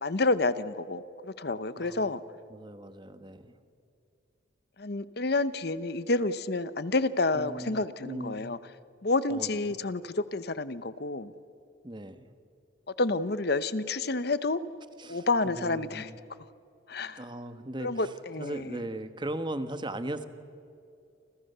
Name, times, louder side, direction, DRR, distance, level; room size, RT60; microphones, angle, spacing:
voice 1, 0.0-2.2 4.8-8.6 9.0-11.3 12.9-14.6 15.1-16.1 16.4-16.5 16.9-17.2 17.8-18.8, left 3 dB, 55° left, 15 dB, 0.9 m, -29 dB
voice 2, 1.8-2.1 2.5-3.5 7.3-8.5 9.3-9.7 11.8-12.3 15.0-16.2 17.2-17.9 18.4-20.2, right 1 dB, 25° right, 10 dB, 1.2 m, -38 dB
29.5 x 26.5 x 6.8 m, 2.5 s
head